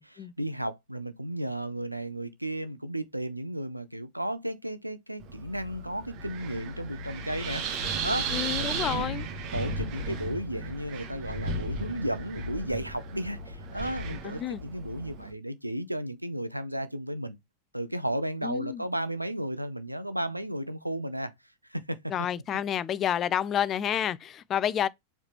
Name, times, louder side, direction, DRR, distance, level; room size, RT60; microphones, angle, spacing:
voice 1, 0.0-8.3 8.6-17.4 17.7-21.3 21.7-22.0, right 1 dB, 90° right, 0.6 m, -34 dB
Wind, 5.2-15.3, right 3 dB, 40° right, 1.3 m, -35 dB
voice 2, 8.3-9.2 14.2-14.6 18.4-18.8 22.1-24.9, left 10 dB, 30° left, 0.4 m, -29 dB
4.7 x 3.3 x 3.0 m
figure-of-eight pair, 90°, 0 cm